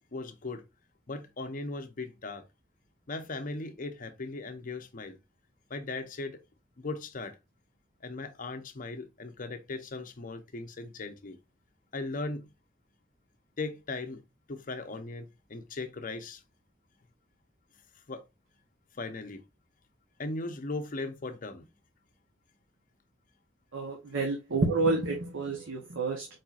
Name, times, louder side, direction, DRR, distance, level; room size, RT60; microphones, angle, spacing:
voice 1, 0.1-0.6 1.1-2.4 3.1-5.2 5.7-6.4 6.8-7.3 8.0-11.4 11.9-12.5 13.6-14.2 14.5-16.4 18.1-18.2 19.0-19.4 20.2-21.7, left 3 dB, 45° left, 0.7 m, -38 dB
voice 2, 23.7-26.3, right 3 dB, 90° right, 0.9 m, -29 dB
4.8 x 4.4 x 2.4 m
head